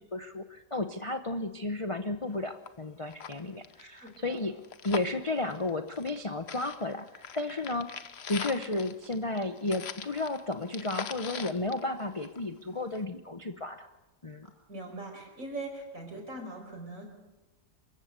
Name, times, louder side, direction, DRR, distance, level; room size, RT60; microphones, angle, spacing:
voice 1, 0.0-4.5 4.8-7.9 8.3-13.9 14.2-14.5, left 2 dB, 25° left, 8 dB, 0.7 m, -33 dB
sound 1, 2.3-2.4 2.7-2.8 3.1-6.2 6.5-12.6 12.9-13.0, left 7 dB, 45° left, 1.0 m, -41 dB
voice 2, 3.8-4.4 14.7-17.1, right 2 dB, 50° right, 3 dB, 5.4 m, -41 dB
26.0 x 15.5 x 8.1 m, 1.1 s
omnidirectional pair, 1.8 m